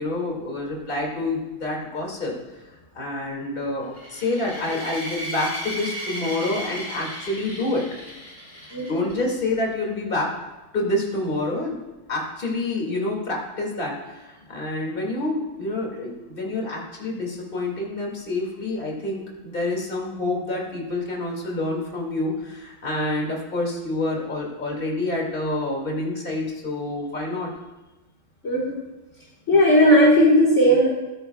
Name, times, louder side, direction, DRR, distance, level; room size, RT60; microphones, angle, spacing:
voice 1, 0.0-2.6 2.9-7.8 8.8-10.3 10.7-11.8 12.1-27.5, left 2 dB, 35° left, -1 dB, 2.5 m, -27 dB
sound 1, 3.9-9.2, equal, 10° right, 3.9 m, -35 dB
voice 2, 28.4-28.8 29.5-30.9, equal, 55° left, -5 dB, 2.1 m, -16 dB
15.5 x 13.5 x 2.3 m, 1.1 s
omnidirectional pair, 1.5 m